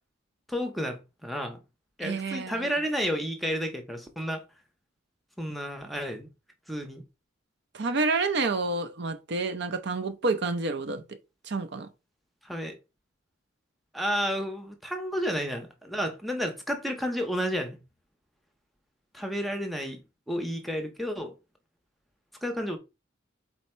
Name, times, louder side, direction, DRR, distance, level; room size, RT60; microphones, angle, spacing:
voice 1, 0.5-1.6 2.0-4.4 5.4-6.3 6.7-7.0 12.4-12.8 13.9-17.8 19.1-20.0 20.3-21.3 22.4-22.8, equal, ahead, 0.7 m, -31 dB
voice 2, 2.0-2.7 7.7-11.0 11.4-11.9, right 3 dB, 60° right, 0.6 m, -29 dB
4.2 x 2.8 x 4.3 m
head